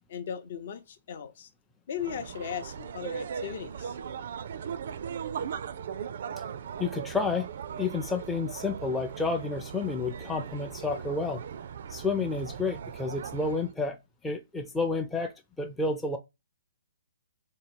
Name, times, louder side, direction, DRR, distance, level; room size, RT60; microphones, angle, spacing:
voice 1, 0.1-1.5 1.9-3.9, left 8 dB, 50° left, 0.6 m, -37 dB
sound 1, 2.0-13.7, right 7 dB, 55° right, 0.3 m, -38 dB
voice 2, 6.8-7.5 7.8-11.4 11.9-14.0 14.2-16.2, left 3 dB, 5° left, 0.4 m, -30 dB
3.7 x 2.9 x 4.3 m
figure-of-eight pair, 130°, 0 cm